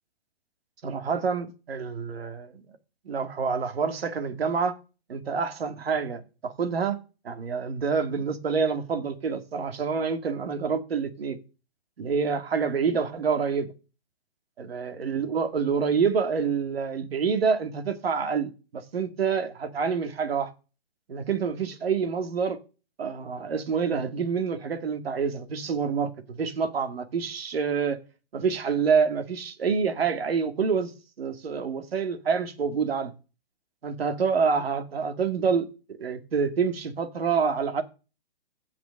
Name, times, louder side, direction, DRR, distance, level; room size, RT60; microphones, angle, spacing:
voice 1, 0.8-2.6 3.1-4.8 5.1-7.0 7.2-11.4 12.0-13.7 14.6-20.5 21.1-22.6 23.0-28.0 28.3-30.9 31.2-33.1 33.8-35.7 36.0-37.8, right 5 dB, 70° right, 2.4 m, -27 dB
16.0 x 5.9 x 6.5 m
hypercardioid pair, 180°, 31 cm